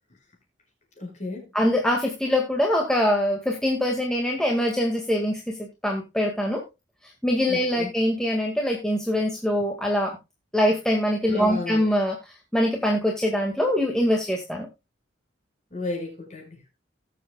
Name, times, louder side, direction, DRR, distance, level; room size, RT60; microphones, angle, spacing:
voice 1, 1.0-1.5 7.5-7.9 11.3-11.8 15.7-16.7, left 2 dB, 35° left, 5.1 m, -33 dB
voice 2, 1.5-6.6 7.2-10.2 10.5-14.7, equal, 5° left, 1.9 m, -23 dB
19.5 x 7.5 x 2.3 m
head